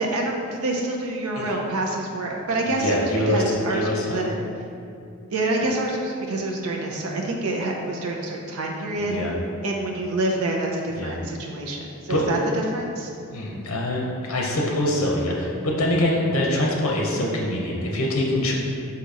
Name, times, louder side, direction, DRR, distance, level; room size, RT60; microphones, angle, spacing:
voice 1, 0.0-4.4 5.3-9.2 9.6-13.1, right 2 dB, 80° right, 0 dB, 0.5 m, -27 dB
voice 2, 2.8-3.4 3.7-4.2 9.0-9.3 10.9-11.2 12.1-12.3 13.3-18.5, left 1 dB, 75° left, -2 dB, 0.7 m, -24 dB
4.0 x 2.8 x 4.8 m, 2.4 s
head